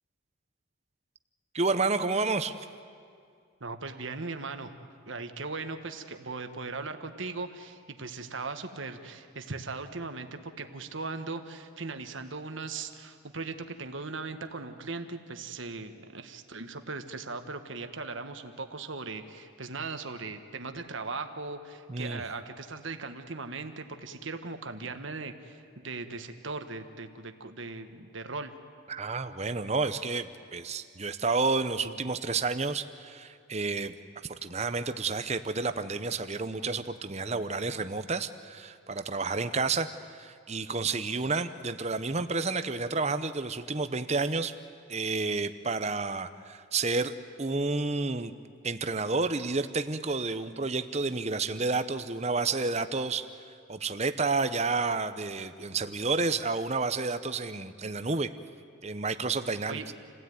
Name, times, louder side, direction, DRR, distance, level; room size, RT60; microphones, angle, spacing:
voice 1, 1.5-2.5 21.9-22.2 28.9-33.9 34.4-44.5 44.9-48.3 48.6-53.3 53.7-58.3 58.8-59.8, right 3 dB, 30° right, 10 dB, 0.8 m, -30 dB
voice 2, 3.6-28.5 59.7-59.8, right 3 dB, 65° right, 7 dB, 1.5 m, -39 dB
28.5 x 17.0 x 9.5 m, 2.3 s
head